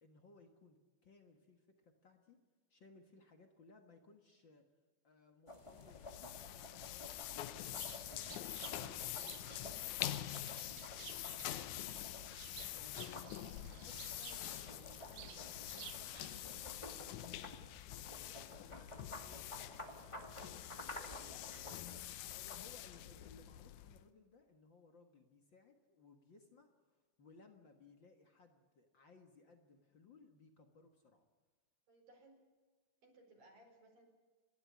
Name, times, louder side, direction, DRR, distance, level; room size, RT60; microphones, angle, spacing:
voice 1, 0.0-2.4 2.7-4.7 5.0-7.2 7.7-10.9 11.4-12.2 12.7-17.4 17.9-19.8 20.7-31.2, left 4 dB, 55° left, 5 dB, 1.3 m, -64 dB
sound 1, 5.5-23.0, left 1 dB, 25° left, 0.6 m, -54 dB
sound 2, 5.6-24.1, left 13 dB, 80° left, 1.7 m, -46 dB
Bird, 7.7-16.7, right 12 dB, 85° right, 3.0 m, -56 dB
voice 2, 31.9-32.4 33.0-34.1, right 2 dB, 60° right, 1 dB, 6.2 m, -63 dB
29.0 x 12.0 x 9.7 m, 1.4 s
omnidirectional pair, 4.4 m